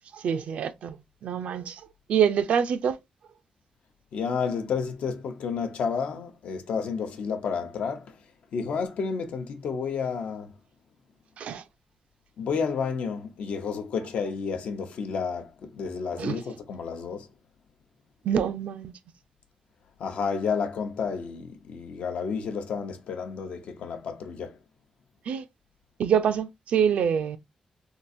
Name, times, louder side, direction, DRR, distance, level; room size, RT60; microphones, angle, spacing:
voice 1, 0.1-1.8 2.1-3.0 11.4-11.6 16.2-16.4 18.2-18.9 25.3-25.4 26.0-27.4, right 8 dB, 85° right, 0.4 m, -25 dB
voice 2, 4.1-8.2 8.5-10.6 12.4-17.3 20.0-24.6, left 5 dB, 80° left, 0.7 m, -31 dB
3.7 x 2.4 x 2.5 m
cardioid pair, 110°, 2 cm